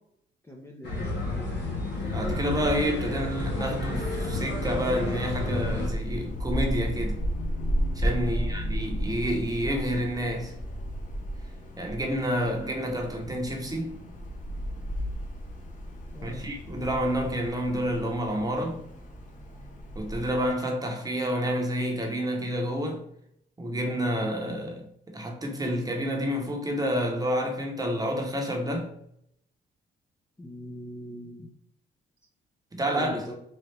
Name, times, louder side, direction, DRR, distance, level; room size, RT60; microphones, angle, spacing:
voice 1, 0.4-1.2 8.3-8.6 16.1-16.5 30.4-31.5 32.9-33.3, left 1 dB, 10° left, 0.6 m, -41 dB
sound 1, 0.8-5.9, left 2 dB, 60° left, 1.1 m, -31 dB
Wind, 1.9-20.5, equal, 40° left, 0.9 m, -34 dB
voice 2, 2.1-7.2 7.9-10.6 11.8-14.0 16.2-18.8 19.9-23.0 23.6-28.9 32.7-33.2, equal, 20° right, 0.9 m, -29 dB
4.1 x 2.4 x 3.2 m
cardioid pair, 90°, 20 cm